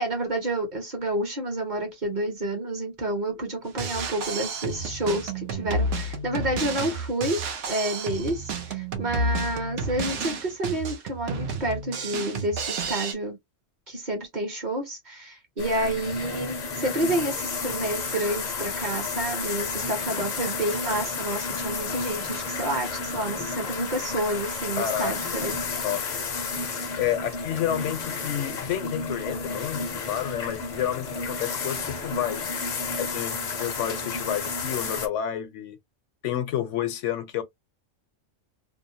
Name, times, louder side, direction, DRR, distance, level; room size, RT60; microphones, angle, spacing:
voice 1, 0.0-13.4 13.9-25.6, right 1 dB, 40° right, 0.9 m, -29 dB
Drum kit, 3.7-13.1, right 3 dB, 70° right, 0.9 m, -31 dB
sound 1, 15.6-35.1, left 4 dB, 50° left, 0.6 m, -32 dB
voice 2, 24.8-25.1 25.8-26.1 27.0-32.4 32.9-35.8 36.2-37.4, left 10 dB, 75° left, 0.9 m, -30 dB
2.6 x 2.0 x 2.6 m
omnidirectional pair, 1.3 m